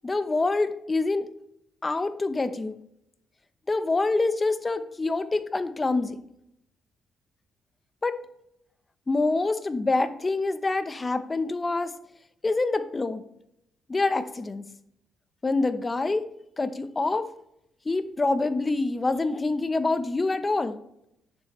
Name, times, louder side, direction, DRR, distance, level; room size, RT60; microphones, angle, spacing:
voice 1, 0.0-1.2 1.8-2.8 3.7-6.2 8.0-8.2 9.1-11.9 12.4-13.2 13.9-14.6 15.4-16.3 16.6-17.3 17.9-20.8, left 3 dB, 25° left, 11 dB, 0.8 m, -26 dB
10.5 x 7.4 x 3.2 m, 0.78 s
cardioid pair, 90°, 0 cm